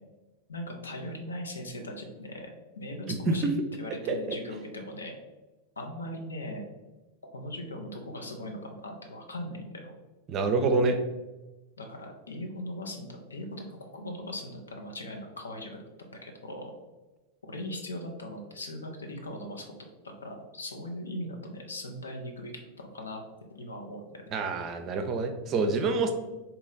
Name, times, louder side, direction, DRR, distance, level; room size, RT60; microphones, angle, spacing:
voice 1, 0.5-2.5 2.8-3.5 3.8-5.1 5.8-6.6 7.3-9.9 11.8-15.8 16.2-16.7 17.5-19.7 20.0-22.5 22.9-23.2 23.5-24.0 24.3-24.4, left 1 dB, 75° left, 2 dB, 0.7 m, -39 dB
voice 2, 10.3-11.0 24.3-26.1, right 3 dB, 30° right, 6 dB, 0.5 m, -26 dB
4.1 x 2.8 x 3.8 m, 1.1 s
figure-of-eight pair, 90°, 0 cm